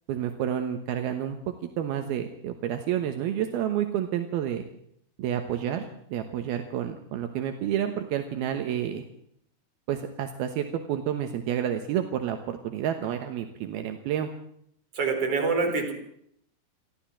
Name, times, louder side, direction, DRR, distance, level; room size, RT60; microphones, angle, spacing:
voice 1, 0.1-1.4 1.6-4.6 5.2-9.0 9.9-14.3, right 10 dB, 75° right, 6 dB, 3.1 m, -29 dB
voice 2, 14.9-15.9, right 4 dB, 40° right, 3 dB, 5.1 m, -25 dB
29.0 x 12.5 x 7.5 m, 0.70 s
omnidirectional pair, 4.5 m